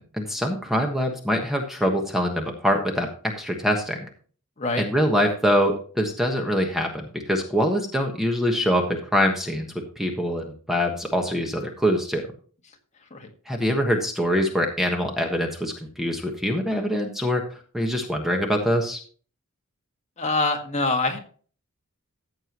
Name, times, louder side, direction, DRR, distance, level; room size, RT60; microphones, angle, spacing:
voice 1, 0.0-3.1 3.4-4.0 4.8-12.2 13.5-17.4 17.7-19.0, equal, ahead, 2 dB, 1.3 m, -24 dB
voice 2, 20.2-21.2, left 3 dB, 30° left, 3 dB, 1.7 m, -24 dB
14.5 x 7.8 x 3.0 m, 0.42 s
head